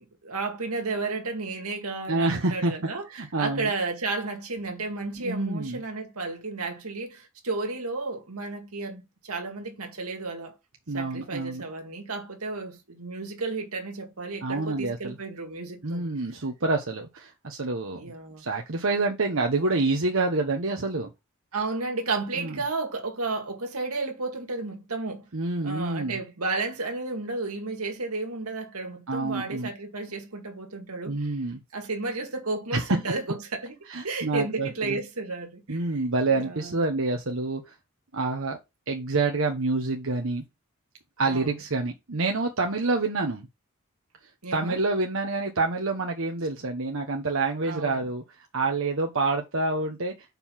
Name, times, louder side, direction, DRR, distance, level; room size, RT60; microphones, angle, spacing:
voice 1, 0.2-3.1 3.4-10.5 10.9-16.1 17.9-18.4 21.5-25.3 25.6-31.4 31.7-33.8 34.0-35.8 36.3-36.8 41.3-41.5 44.4-44.8 47.6-48.0, right 3 dB, 85° right, 2.0 m, -32 dB
voice 2, 2.1-2.7 3.1-3.7 5.2-5.8 10.9-11.6 14.4-15.2 15.8-18.1 18.4-21.1 22.4-22.6 25.3-26.2 29.1-29.7 31.1-31.6 32.7-33.0 33.9-35.0 35.7-37.7 38.1-38.6 38.9-40.4 41.2-43.5 44.5-50.1, right 3 dB, 60° right, 1.0 m, -27 dB
5.3 x 4.7 x 5.8 m
head